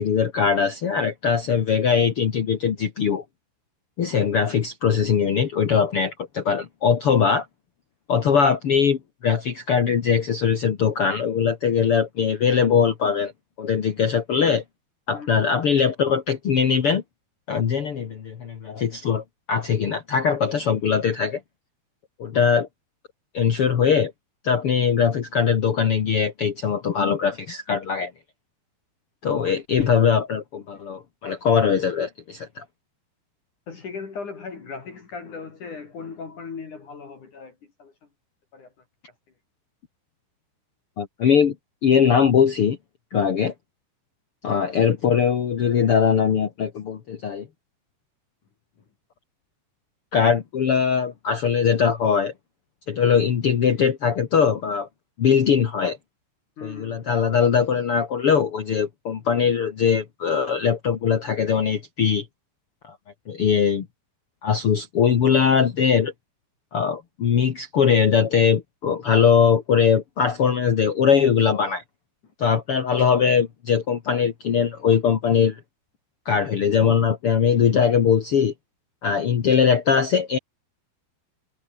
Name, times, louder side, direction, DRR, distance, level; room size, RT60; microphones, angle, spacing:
voice 1, 0.0-3.2 4.0-7.4 8.1-13.3 13.6-14.6 15.1-17.0 17.5-21.4 22.2-22.7 23.3-24.1 24.4-28.1 29.2-32.6 41.0-41.5 41.8-42.8 43.1-43.5 44.4-47.5 50.1-52.3 52.9-54.9 55.2-56.0 56.6-62.2 62.9-63.0 63.3-63.9 64.4-66.1 66.7-71.8 72.4-75.6 76.2-78.5 79.0-80.4, left 7 dB, 75° left, 1.3 m, -21 dB
voice 2, 33.7-37.5 37.8-37.9 38.5-38.7 56.6-57.0, left 5 dB, 45° left, 4.3 m, -37 dB
omnidirectional pair, 5.3 m